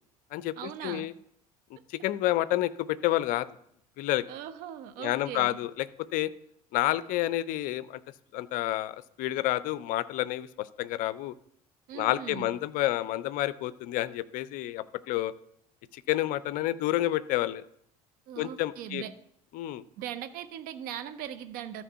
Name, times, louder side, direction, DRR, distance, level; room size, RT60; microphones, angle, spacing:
voice 1, 0.6-1.1 4.3-5.6 11.9-12.5 18.3-19.1 20.0-21.8, right 10 dB, 50° right, 12 dB, 0.8 m, -39 dB
voice 2, 2.0-3.5 4.0-4.2 5.0-5.9 6.1-6.3 6.7-8.0 8.3-11.3 11.9-15.3 15.9-17.6 18.4-19.0 19.5-19.8, left 15 dB, 45° left, 17 dB, 0.5 m, -29 dB
13.5 x 4.6 x 5.6 m, 0.71 s
figure-of-eight pair, 60°, 19 cm